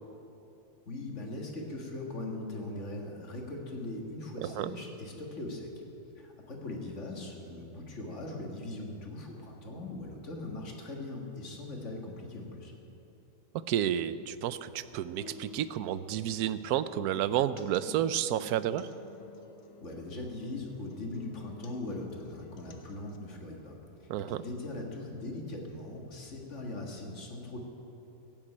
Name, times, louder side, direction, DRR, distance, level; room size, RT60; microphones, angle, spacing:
voice 1, 0.9-5.7 6.2-12.7 19.8-27.6, left 2 dB, 45° left, 0 dB, 2.1 m, -40 dB
voice 2, 13.7-18.9 24.1-24.4, right 11 dB, 70° right, 14 dB, 1.0 m, -31 dB
sound 1, 15.2-23.2, left 6 dB, 80° left, 1.6 m, -52 dB
16.0 x 7.4 x 8.8 m, 2.9 s
omnidirectional pair, 1.8 m